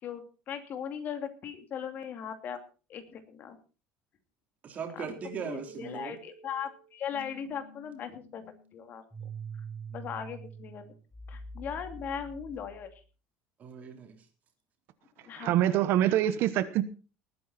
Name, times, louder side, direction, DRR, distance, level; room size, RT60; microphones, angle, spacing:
voice 1, 0.0-2.6 2.9-3.6 4.9-5.1 5.4-9.0 9.9-10.9 11.3-12.9 15.2-15.6, left 8 dB, 40° left, 2.6 m, -38 dB
voice 2, 4.6-6.1 13.6-14.2, right 6 dB, 35° right, 3.6 m, -39 dB
sound 1, 5.1-13.0, right 4 dB, 5° left, 5.6 m, -46 dB
voice 3, 15.4-16.8, right 12 dB, 55° right, 1.2 m, -25 dB
19.5 x 9.4 x 4.3 m
cardioid pair, 145°, 5 cm